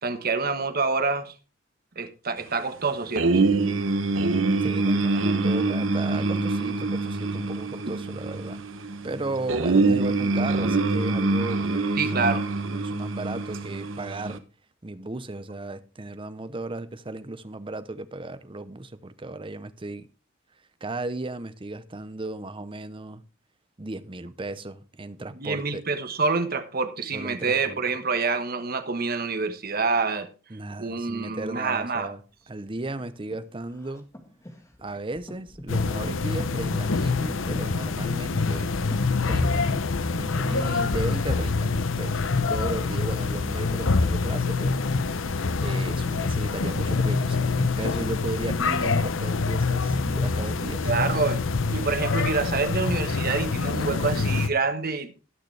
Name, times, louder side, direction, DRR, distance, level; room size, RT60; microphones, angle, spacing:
voice 1, 0.0-1.3 1.9-3.4 10.3-10.5 12.0-12.5 25.3-30.3 30.8-32.1 50.8-55.1, right 4 dB, 50° right, 1.3 m, -27 dB
sound 1, 3.2-14.4, right 3 dB, 85° right, 1.0 m, -25 dB
voice 2, 4.6-8.6 9.0-12.3 12.5-14.4 14.8-20.1 20.8-23.2 23.8-25.8 27.1-27.8 30.5-32.2 32.5-34.1 34.8-38.7 39.2-39.9 40.1-44.8 45.1-45.3 45.6-50.9, right 2 dB, 25° right, 0.7 m, -35 dB
Breathing, 32.4-40.9, left 1 dB, 15° left, 1.7 m, -46 dB
sound 2, 35.7-54.5, left 4 dB, 80° left, 0.7 m, -25 dB
19.5 x 6.6 x 3.3 m
head